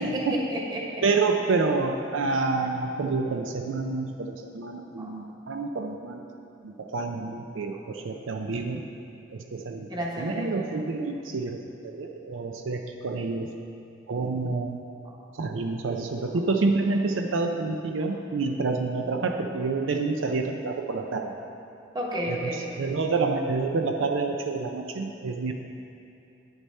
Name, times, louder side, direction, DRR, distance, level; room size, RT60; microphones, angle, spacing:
voice 1, 0.0-1.0 5.0-5.2 7.7-7.8 9.9-10.7 15.0-15.2 16.3-16.4 18.0-18.1 21.9-22.7, equal, 20° right, -2 dB, 1.1 m, -32 dB
voice 2, 1.0-6.2 6.6-8.8 9.5-9.9 10.2-13.5 14.1-14.8 15.3-21.3 22.3-22.4 22.8-25.5, right 3 dB, 75° right, 4 dB, 0.5 m, -28 dB
9.5 x 6.7 x 4.2 m, 2.8 s
head